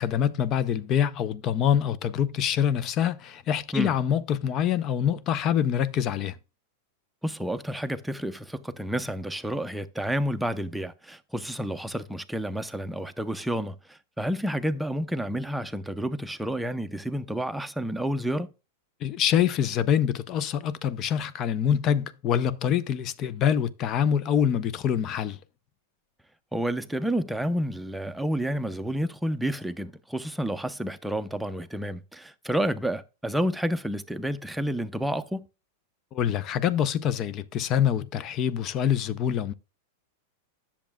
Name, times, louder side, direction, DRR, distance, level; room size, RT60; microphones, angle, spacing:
voice 1, 0.0-6.4 19.0-25.4 36.1-39.5, left 9 dB, 40° left, 0.5 m, -25 dB
voice 2, 7.2-18.5 26.5-35.4, equal, 5° right, 0.6 m, -30 dB
10.0 x 7.0 x 2.2 m
hypercardioid pair, 110°, 0 cm